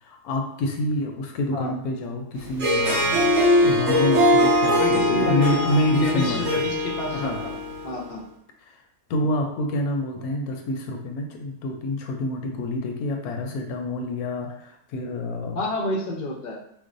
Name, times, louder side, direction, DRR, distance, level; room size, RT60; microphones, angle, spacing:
voice 1, 0.0-6.7 7.1-7.4 8.7-8.8 9.1-15.6, left 1 dB, 80° left, 3 dB, 1.1 m, -27 dB
Harp, 2.5-7.9, left 1 dB, 60° right, 1.1 m, -21 dB
voice 2, 4.8-7.5 7.8-8.2 15.5-16.6, left 1 dB, 60° left, -1 dB, 0.4 m, -30 dB
4.5 x 2.0 x 2.5 m, 0.73 s
omnidirectional pair, 1.6 m